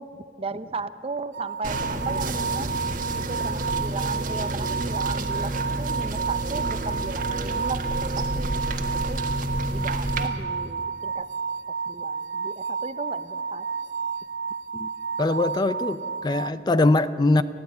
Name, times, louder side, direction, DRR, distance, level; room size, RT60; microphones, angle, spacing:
voice 1, 0.0-2.7 3.1-5.5 5.8-8.7 9.1-9.2 9.7-11.3 11.9-13.7, right 3 dB, 35° right, 13 dB, 0.7 m, -36 dB
sound 1, 1.3-16.5, right 5 dB, 75° right, 0.4 m, -31 dB
sound 2, 1.6-10.3, right 1 dB, 50° right, 1.5 m, -29 dB
voice 2, 15.2-17.4, left 2 dB, 25° left, 14 dB, 0.4 m, -22 dB
20.0 x 14.0 x 9.4 m, 2.4 s
head